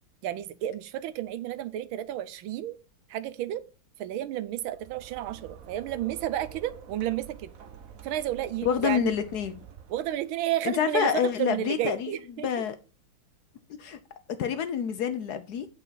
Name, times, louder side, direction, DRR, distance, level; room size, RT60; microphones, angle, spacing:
voice 1, 0.2-2.8 3.1-3.6 4.0-7.5 8.0-9.1 9.9-12.5, right 12 dB, 85° right, 1.5 m, -31 dB
sound 1, 4.5-10.4, right 8 dB, 55° right, 1.1 m, -47 dB
voice 2, 8.6-9.6 10.6-12.7 13.8-14.0 14.4-15.7, left 8 dB, 65° left, 1.1 m, -27 dB
8.2 x 5.8 x 4.0 m
omnidirectional pair, 2.2 m